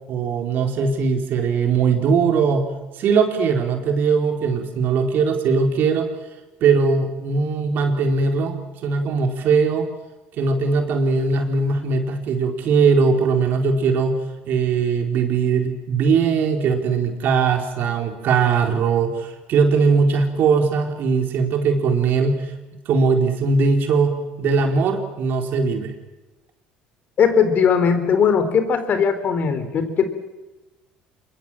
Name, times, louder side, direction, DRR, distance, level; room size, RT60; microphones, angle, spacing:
voice 1, 0.1-2.7 3.0-6.1 6.6-9.9 10.4-14.2 14.5-22.4 22.9-25.9, right 5 dB, 60° right, 4 dB, 4.3 m, -20 dB
voice 2, 27.2-30.1, left 6 dB, 50° left, 10 dB, 3.8 m, -19 dB
26.0 x 22.0 x 7.6 m, 1.1 s
supercardioid pair, 75°, 4 cm